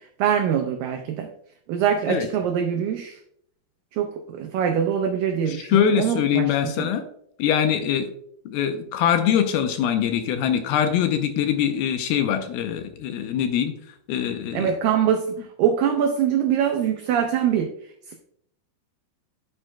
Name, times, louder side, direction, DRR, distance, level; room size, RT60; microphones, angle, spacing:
voice 1, 0.2-1.3 1.7-3.2 3.9-6.9 14.5-17.7, right 8 dB, 85° right, 5 dB, 1.9 m, -23 dB
voice 2, 5.5-7.1 7.4-8.1 8.5-13.7 14.1-14.7, left 9 dB, 80° left, 7 dB, 2.4 m, -23 dB
8.9 x 8.8 x 2.2 m, 0.69 s
omnidirectional pair, 4.7 m